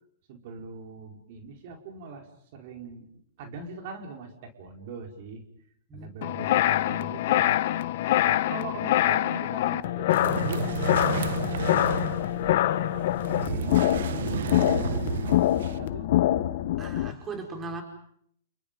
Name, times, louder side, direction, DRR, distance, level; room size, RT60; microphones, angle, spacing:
voice 1, 0.3-2.3 2.5-3.1 3.4-5.4 5.9-7.6 8.2-13.7 14.3-15.1 15.5-16.1 16.4-16.5, right 5 dB, 50° right, 3 dB, 4.9 m, -42 dB
sound 1, 6.2-17.1, left 13 dB, 55° left, 1.3 m, -25 dB
sound 2, 10.1-15.8, right 8 dB, 70° right, 1.5 m, -32 dB
voice 2, 16.8-17.8, right 3 dB, 20° right, 3 dB, 5.2 m, -40 dB
29.0 x 29.0 x 5.4 m, 0.67 s
hypercardioid pair, 135°, 0 cm